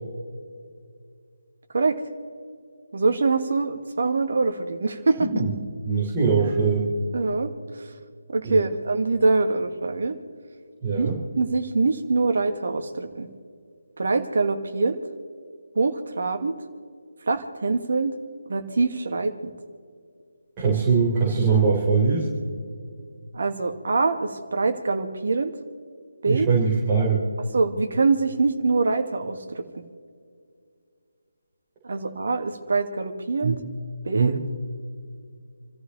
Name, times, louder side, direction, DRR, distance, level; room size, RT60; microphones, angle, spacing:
voice 1, 2.9-5.3 7.1-7.5 8.3-10.2 11.0-11.1 11.4-13.3 14.0-15.0 15.8-16.5 17.3-18.1 18.5-19.5 23.3-25.5 26.2-26.5 27.5-29.8 31.8-33.6 34.0-34.6, right 3 dB, 50° right, 6 dB, 2.1 m, -24 dB
voice 2, 5.2-5.5 5.9-6.9 8.4-8.7 10.8-11.2 20.6-22.3 26.3-27.2 33.4-33.6 34.1-34.4, right 5 dB, 20° right, -5 dB, 4.1 m, -22 dB
29.0 x 14.5 x 3.3 m, 2.3 s
figure-of-eight pair, 150°, 0 cm